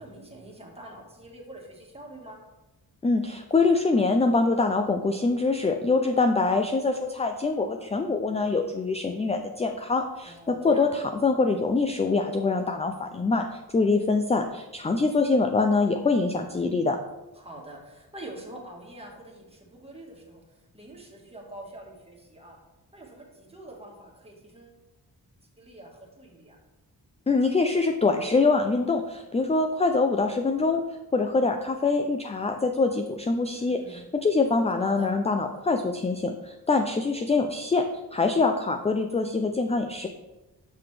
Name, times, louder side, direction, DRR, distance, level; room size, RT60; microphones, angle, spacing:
voice 1, 0.0-2.4 10.2-10.9 16.3-16.8 17.3-22.6 22.9-24.7 25.6-26.6 33.5-34.1 34.8-35.1, right 1 dB, 15° right, -1 dB, 1.5 m, -45 dB
voice 2, 3.0-17.0 27.3-30.8 31.1-37.8 38.1-40.1, left 3 dB, 15° left, 5 dB, 0.3 m, -24 dB
7.4 x 5.9 x 3.3 m, 1.1 s
wide cardioid pair, 120°, 40 cm